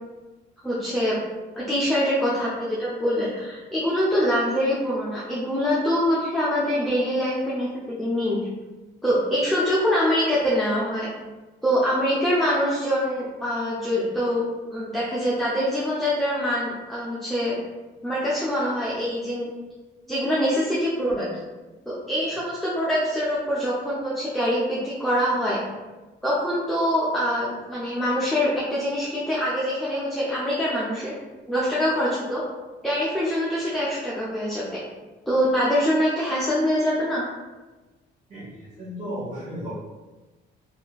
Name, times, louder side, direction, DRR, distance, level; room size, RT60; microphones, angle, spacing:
voice 1, 0.6-1.1 1.6-8.4 9.0-11.1 11.6-17.6 18.0-19.5 20.1-21.3 21.9-25.6 26.2-31.1 31.5-32.4 32.8-34.8 35.3-37.2, equal, ahead, -8 dB, 0.6 m, -24 dB
voice 2, 38.3-39.7, equal, 40° right, -10 dB, 1.0 m, -34 dB
2.8 x 2.5 x 2.2 m, 1.2 s
cardioid pair, 90°, 20 cm